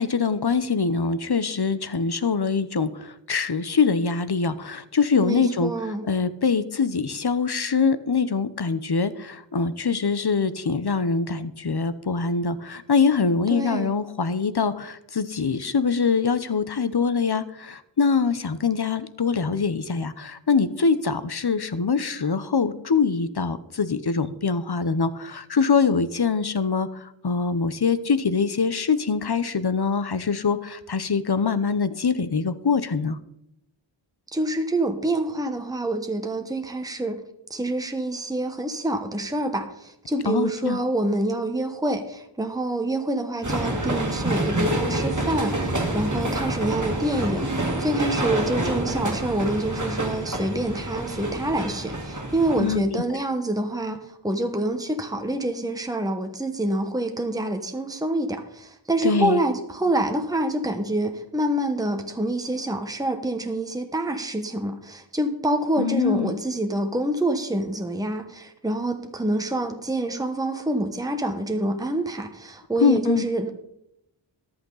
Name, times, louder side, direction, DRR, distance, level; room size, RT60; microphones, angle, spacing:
voice 1, 0.0-5.7 6.1-33.2 40.3-40.8 52.6-53.0 59.0-59.4 65.8-66.3 72.8-73.3, left 5 dB, 55° left, 14 dB, 0.9 m, -24 dB
voice 2, 5.2-6.1 13.5-13.9 34.3-37.2 37.5-73.5, right 1 dB, 10° right, 5 dB, 1.2 m, -27 dB
sound 1, 43.4-52.8, right 1 dB, 40° right, 2.0 m, -27 dB
14.0 x 11.0 x 4.0 m, 0.80 s
wide cardioid pair, 45°, 46 cm